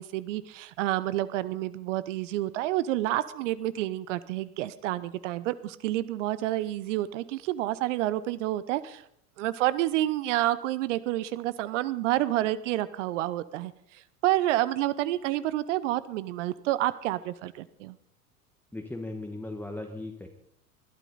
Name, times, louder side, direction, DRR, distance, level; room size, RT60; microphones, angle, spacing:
voice 1, 0.0-9.0 9.4-18.0, right 15 dB, 55° right, 16 dB, 0.8 m, -29 dB
voice 2, 18.7-20.3, left 2 dB, 5° left, 3 dB, 1.3 m, -37 dB
21.0 x 12.0 x 4.0 m, 0.73 s
figure-of-eight pair, 90°, 45 cm